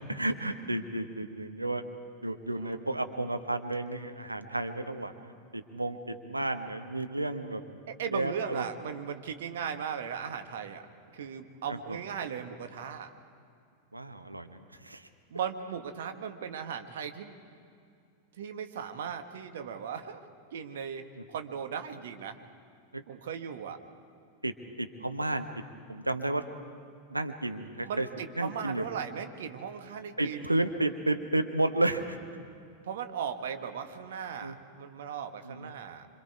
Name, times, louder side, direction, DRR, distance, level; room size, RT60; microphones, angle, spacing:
voice 1, 0.1-1.8 2.2-7.6 8.1-8.6 11.7-12.0 13.9-15.1 22.9-23.0 24.4-25.5 25.9-26.4 27.1-28.1 28.4-28.8 30.2-32.2 34.4-34.6 35.4-35.7, right 2 dB, 85° right, 7 dB, 1.2 m, -32 dB
voice 2, 7.9-10.8 11.1-13.1 15.3-17.4 18.4-20.2 20.5-22.4 23.1-23.8 27.8-30.6 32.8-36.1, right 7 dB, 60° right, 6 dB, 1.5 m, -37 dB
26.0 x 26.0 x 4.8 m, 2.5 s
figure-of-eight pair, 90°, 0 cm